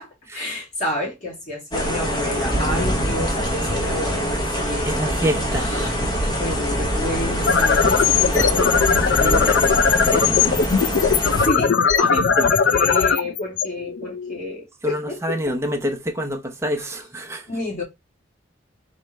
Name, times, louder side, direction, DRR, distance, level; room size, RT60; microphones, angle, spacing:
voice 1, 0.3-5.1 5.4-5.9 6.4-9.9 11.4-15.5 16.7-16.9 17.5-17.8, left 1 dB, 40° left, 2.4 m, -30 dB
sound 1, 1.7-11.5, equal, 20° left, 0.9 m, -24 dB
voice 2, 5.0-5.7 8.3-8.7 9.1-10.9 12.4-12.5 14.8-17.4, equal, 15° right, 0.7 m, -27 dB
sound 2, 7.3-14.4, left 6 dB, 65° left, 0.4 m, -19 dB
4.2 x 3.2 x 3.3 m
head